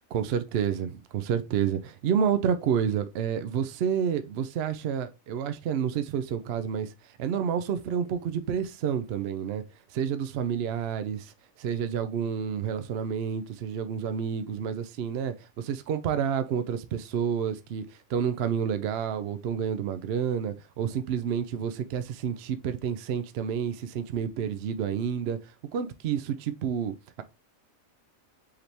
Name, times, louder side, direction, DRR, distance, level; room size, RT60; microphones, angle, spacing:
voice 1, 0.1-6.9 7.2-9.6 9.9-11.3 11.6-15.3 15.7-17.8 18.1-25.4 25.7-27.2, right 8 dB, 65° right, 0.7 m, -29 dB
4.9 x 3.3 x 2.9 m
omnidirectional pair, 1.4 m